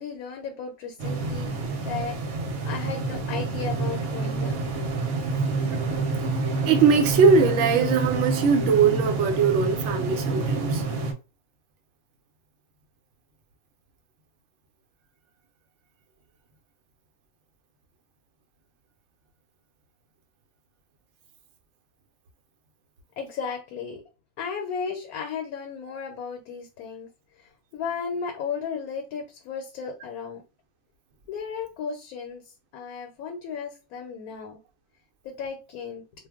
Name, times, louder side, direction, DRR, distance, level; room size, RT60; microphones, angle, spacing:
voice 1, 0.0-2.2 2.6-4.5 23.2-24.0 24.4-27.1 27.4-30.4 31.3-32.4 32.7-34.6 35.2-36.0, left 6 dB, 90° left, 1.1 m, -34 dB
sound 1, 1.0-11.1, right 3 dB, 80° right, 1.0 m, -28 dB
voice 2, 6.4-10.8, right 5 dB, 65° right, 0.8 m, -21 dB
2.4 x 2.0 x 3.4 m
omnidirectional pair, 1.5 m